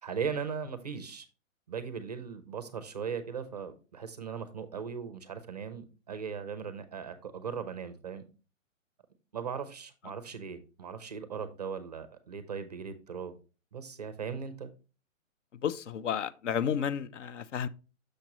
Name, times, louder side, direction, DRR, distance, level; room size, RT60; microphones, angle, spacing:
voice 1, 0.0-1.3 1.7-8.2 9.3-13.3 13.7-14.7, right 6 dB, 30° right, 0.4 m, -38 dB
voice 2, 15.6-17.7, left 8 dB, 60° left, 0.5 m, -32 dB
6.5 x 5.9 x 2.9 m
hypercardioid pair, 160°, 41 cm